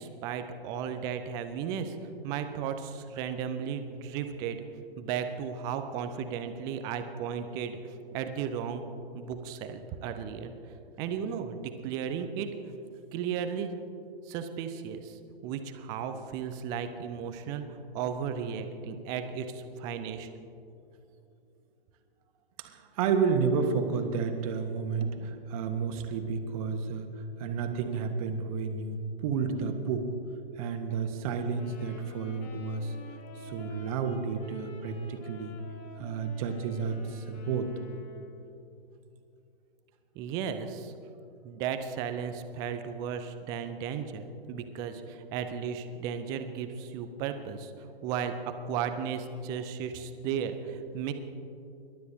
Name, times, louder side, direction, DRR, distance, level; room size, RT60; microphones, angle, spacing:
voice 1, 0.0-2.0 2.2-4.6 5.0-8.9 9.1-10.5 11.0-12.5 13.1-13.7 14.3-17.6 17.9-20.3 40.2-40.9 41.4-51.1, right 7 dB, 10° right, 8 dB, 0.4 m, -35 dB
voice 2, 22.6-27.1 27.4-30.1 30.6-32.9 33.3-35.6 36.0-37.7, right 5 dB, 35° right, 6 dB, 1.3 m, -31 dB
sound 1, 31.5-38.6, left 5 dB, 25° left, 1.0 m, -48 dB
27.0 x 12.0 x 2.8 m, 2.6 s
figure-of-eight pair, 120°, 31 cm